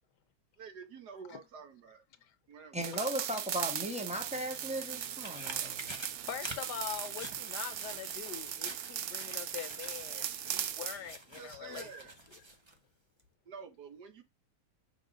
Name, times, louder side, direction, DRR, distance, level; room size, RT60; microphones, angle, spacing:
voice 1, 0.6-2.0 2.5-3.4 11.3-12.1 13.5-14.2, right 6 dB, 65° right, 1.5 m, -49 dB
voice 2, 2.7-6.0, equal, 5° right, 0.9 m, -37 dB
sound 1, 2.8-11.0, right 10 dB, 80° right, 0.7 m, -38 dB
sound 2, 4.0-12.8 13.2-13.3, right 2 dB, 25° right, 0.6 m, -48 dB
voice 3, 6.3-11.9, left 10 dB, 70° left, 1.2 m, -43 dB
5.3 x 3.8 x 5.1 m
omnidirectional pair, 2.0 m